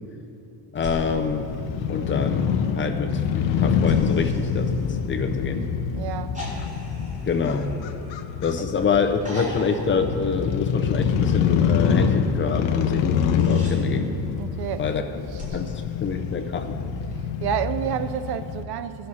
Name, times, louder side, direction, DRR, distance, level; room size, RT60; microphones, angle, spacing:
voice 1, 0.7-1.5 1.9-4.8 5.1-5.6 7.2-7.7 8.4-14.1 14.8-15.1 15.5-15.7 16.0-16.8, left 5 dB, 25° left, 0.5 m, -26 dB
Crow / Motorcycle, 0.8-18.6, left 7 dB, 70° left, 0.8 m, -26 dB
sound 1, 0.8-2.3 3.9-5.5 6.3-8.6 9.2-11.0 13.0-13.8 15.4-16.9 18.4-18.5, left 1 dB, 15° right, 2.9 m, -40 dB
voice 2, 5.9-6.4 8.6-8.7 14.4-14.9 15.3-15.4 17.4-19.1, right 9 dB, 60° right, 0.5 m, -29 dB
16.5 x 6.4 x 4.3 m
cardioid pair, 160°, 45 cm